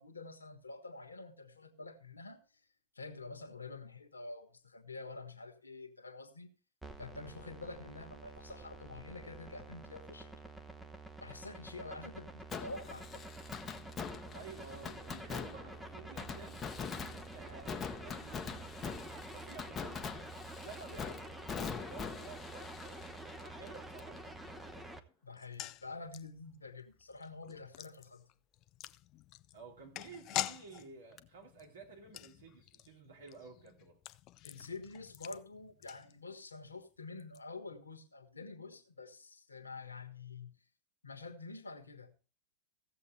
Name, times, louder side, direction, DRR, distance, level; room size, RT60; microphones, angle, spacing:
voice 1, 0.0-2.4 2.9-6.5 7.0-10.3 11.2-13.3 24.7-24.8 25.2-28.3 34.4-40.5 41.0-42.1, left 3 dB, 80° left, 1.4 m, -48 dB
sound 1, 6.8-25.0, right 2 dB, 5° right, 0.9 m, -49 dB
Fireworks, 12.5-24.2 24.5-24.6 31.2-31.3, left 6 dB, 20° left, 0.9 m, -44 dB
voice 2, 14.3-16.6 17.1-20.1 20.6-24.7 29.5-34.0, right 4 dB, 65° right, 3.0 m, -53 dB
sound 2, 25.3-36.6 36.8-36.9 37.2-37.4, left 13 dB, 35° left, 0.4 m, -46 dB
15.5 x 7.5 x 3.3 m
figure-of-eight pair, 90°, 0 cm